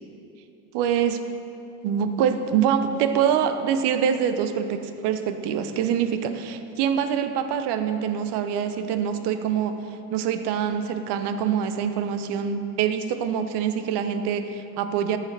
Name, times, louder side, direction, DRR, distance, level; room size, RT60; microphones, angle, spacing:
voice 1, 0.7-1.3 1.8-9.8 10.1-15.2, right 8 dB, 55° right, 9 dB, 0.8 m, -25 dB
13.5 x 4.9 x 3.3 m, 2.9 s
hypercardioid pair, 70°, 48 cm